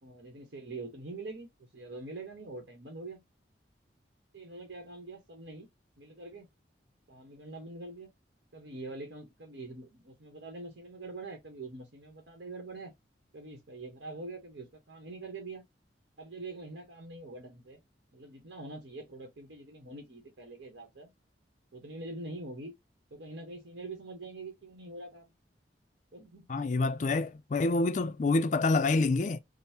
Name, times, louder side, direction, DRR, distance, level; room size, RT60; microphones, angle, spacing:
voice 1, 0.0-3.2 4.3-5.7 6.0-6.5 7.1-8.1 8.5-12.9 13.3-15.6 16.2-17.8 18.1-21.1 21.7-22.7 23.1-25.3 26.1-26.5 26.9-27.2, right 2 dB, 70° right, 1.0 m, -44 dB
voice 2, 26.5-29.4, left 3 dB, 40° left, 0.4 m, -27 dB
5.2 x 2.0 x 2.8 m
head